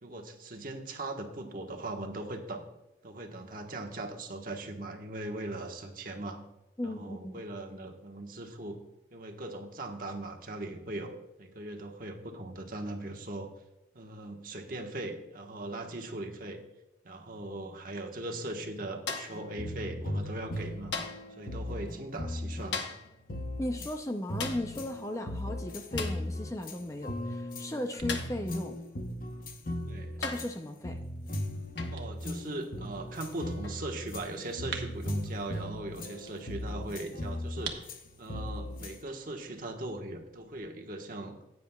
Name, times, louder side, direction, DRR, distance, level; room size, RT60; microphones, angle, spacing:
voice 1, 0.0-2.6 3.0-6.4 6.8-8.8 9.1-11.1 11.4-13.5 13.9-16.6 17.0-20.9 21.4-23.0 29.9-30.2 31.9-37.8 38.2-41.4, right 2 dB, 50° right, 2 dB, 1.3 m, -39 dB
voice 2, 6.8-7.4 23.6-28.8 30.2-31.0, left 1 dB, 15° left, 5 dB, 0.5 m, -36 dB
sound 1, 19.1-19.5 20.9-21.3 22.7-23.1 24.4-24.7 26.0-26.3 28.1-28.4 29.5-29.6 30.2-30.6 31.8-32.0 33.6-33.8, left 5 dB, 75° left, 1.1 m, -37 dB
sound 2, 19.3-24.0 24.3-39.0, left 1 dB, 50° left, 0.9 m, -38 dB
sound 3, 27.1-40.6, right 6 dB, 75° right, 1.2 m, -50 dB
15.5 x 9.3 x 2.3 m, 0.95 s
head